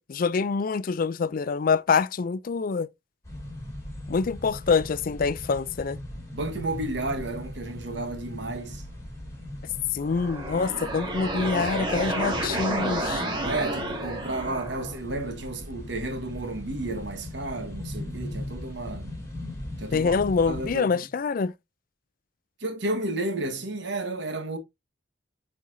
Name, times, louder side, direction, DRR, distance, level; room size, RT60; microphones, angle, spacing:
voice 1, 0.1-2.9 4.1-6.0 9.9-13.2 19.9-21.5, left 5 dB, 45° left, 0.4 m, -25 dB
sound 1, 3.2-20.7, left 1 dB, 15° left, 3.2 m, -39 dB
voice 2, 6.3-8.8 13.4-19.2 19.8-20.2 20.5-21.1 22.6-24.6, right 2 dB, 65° right, 1.4 m, -32 dB
sound 2, 10.0-15.0, right 1 dB, 25° right, 2.1 m, -30 dB
8.4 x 4.4 x 2.7 m
head